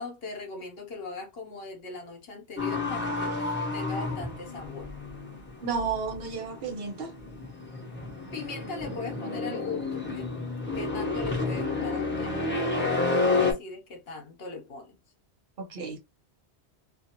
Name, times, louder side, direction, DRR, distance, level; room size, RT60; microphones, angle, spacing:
voice 1, 0.0-4.9 8.3-10.4 10.7-15.0, left 3 dB, 60° left, 1.0 m, -40 dB
sound 1, 2.6-13.5, left 3 dB, 10° left, 0.8 m, -30 dB
voice 2, 5.6-7.1 15.6-16.0, right 5 dB, 65° right, 0.9 m, -32 dB
2.5 x 2.5 x 2.8 m
omnidirectional pair, 1.1 m